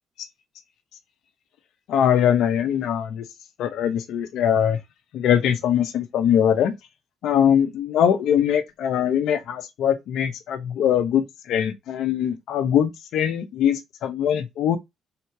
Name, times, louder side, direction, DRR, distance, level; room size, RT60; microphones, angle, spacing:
voice 1, 1.9-3.2 3.6-4.8 5.1-6.7 7.2-14.8, left 9 dB, 80° left, 0.9 m, -22 dB
3.8 x 2.9 x 4.7 m
cardioid pair, 90°, 0 cm